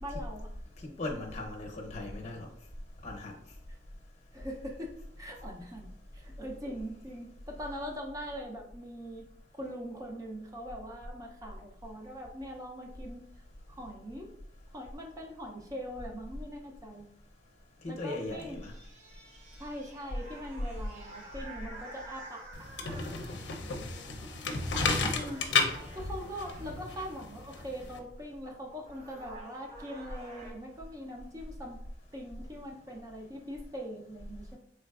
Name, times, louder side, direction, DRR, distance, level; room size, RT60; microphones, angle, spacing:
voice 1, 0.0-0.5 3.7-3.8 4.3-9.3 9.6-13.2 13.7-14.3 14.7-17.1 17.8-18.6 19.6-22.4 25.1-25.5 25.9-31.8 32.1-34.6, equal, 20° right, 1 dB, 0.5 m, -42 dB
voice 2, 1.0-2.5 3.0-3.3 17.8-18.7 23.2-24.2, left 2 dB, 40° left, 1 dB, 0.8 m, -39 dB
sound 1, 18.1-23.7 24.5-24.8 25.1-27.0 28.4-28.5 28.8-30.5, right 2 dB, 40° right, 0.9 m, -50 dB
sound 2, 22.5-28.0, left 4 dB, 80° left, 0.5 m, -33 dB
3.9 x 3.2 x 2.3 m, 0.70 s
head